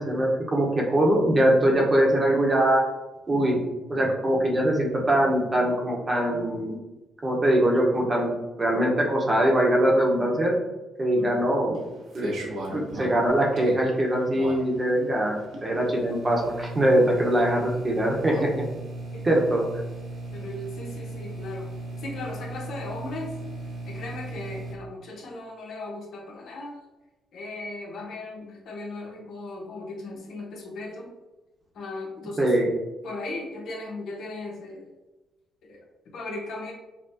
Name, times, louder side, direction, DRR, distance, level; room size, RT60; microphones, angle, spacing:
voice 1, 0.0-2.8 3.3-3.6 3.9-6.8 7.2-10.6 11.0-11.8 12.1-12.3 12.7-15.4 15.6-18.3 19.2-19.7 32.4-32.7, right 1 dB, 25° right, -1 dB, 1.0 m, -22 dB
voice 2, 11.1-11.5 18.3-18.5 19.1-19.3 20.3-21.7 22.0-23.4 23.9-26.8 27.3-31.1 31.7-32.6 33.0-34.9 35.6-36.7, left 2 dB, 70° left, -1 dB, 1.0 m, -37 dB
sound 1, 11.7-24.8, right 2 dB, 70° right, 1.0 m, -37 dB
5.5 x 2.2 x 2.7 m, 1.1 s
cardioid pair, 90°, 0 cm